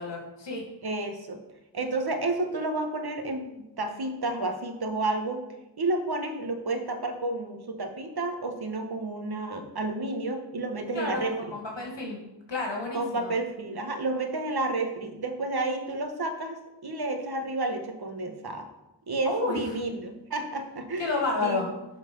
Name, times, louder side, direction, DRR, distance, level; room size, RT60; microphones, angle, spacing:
voice 1, 0.0-0.6 10.9-12.2 12.5-13.3 19.2-19.6 21.0-21.7, left 3 dB, 75° left, -1 dB, 2.2 m, -30 dB
voice 2, 0.8-1.4 1.7-5.4 5.8-11.3 12.9-18.7 19.1-21.1 21.4-21.6, right 2 dB, 55° right, 5 dB, 1.4 m, -31 dB
11.5 x 4.5 x 5.4 m, 0.95 s
wide cardioid pair, 85°, 44 cm